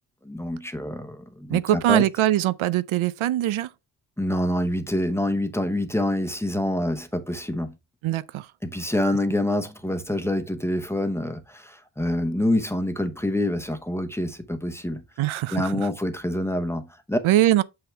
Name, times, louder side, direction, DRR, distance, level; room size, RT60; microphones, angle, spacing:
voice 1, 0.2-2.0 4.2-7.7 8.6-15.0 15.5-17.2, left 1 dB, 5° left, 0.8 m, -26 dB
voice 2, 1.5-3.7 8.0-8.5 15.2-15.9 17.2-17.6, right 13 dB, 90° right, 0.6 m, -22 dB
7.0 x 5.8 x 3.2 m
wide cardioid pair, 120°, 47 cm